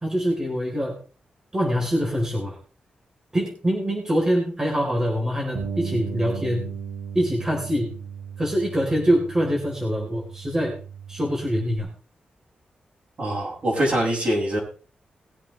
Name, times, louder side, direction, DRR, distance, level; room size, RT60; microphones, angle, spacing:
voice 1, 0.0-1.0 1.5-2.6 3.3-6.7 7.1-7.9 8.4-10.8 11.1-11.9, equal, 20° right, -2 dB, 4.0 m, -24 dB
Bass guitar, 5.5-11.8, right 7 dB, 85° right, 4.3 m, -36 dB
voice 2, 13.2-14.6, right 1 dB, 45° right, -3 dB, 6.9 m, -23 dB
21.0 x 8.2 x 3.4 m, 0.38 s
wide cardioid pair, 125°, 3 cm